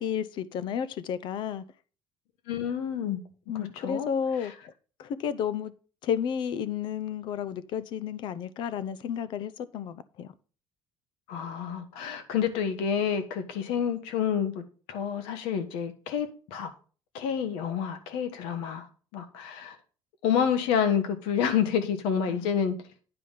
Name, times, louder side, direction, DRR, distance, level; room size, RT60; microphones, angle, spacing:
voice 1, 0.0-1.6 3.5-4.5 5.0-5.7 6.0-10.3 22.3-22.7, left 8 dB, 60° left, 0.7 m, -32 dB
voice 2, 2.5-3.2 3.5-4.1 4.4-4.5 11.3-14.6 14.9-16.7 17.1-18.9 19.1-19.8 20.2-22.8, left 8 dB, 90° left, 1.3 m, -28 dB
9.6 x 5.1 x 5.6 m
cardioid pair, 125°, 9 cm